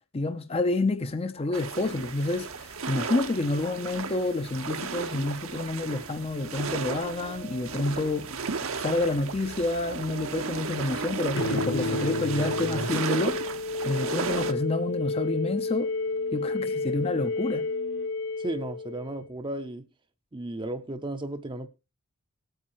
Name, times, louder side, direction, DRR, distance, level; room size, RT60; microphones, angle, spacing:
voice 1, 0.1-8.4 8.8-13.5 13.8-15.9 16.3-17.7, left 2 dB, 25° left, 0.5 m, -29 dB
sound 1, 1.5-14.5, right 5 dB, 70° right, 0.9 m, -34 dB
sound 2, 6.0-13.0, right 4 dB, 85° right, 1.6 m, -43 dB
sound 3, 11.3-19.3, left 3 dB, 55° left, 0.9 m, -31 dB
voice 2, 18.4-19.9 20.3-21.7, right 1 dB, 20° right, 0.6 m, -34 dB
18.5 x 8.9 x 3.0 m
head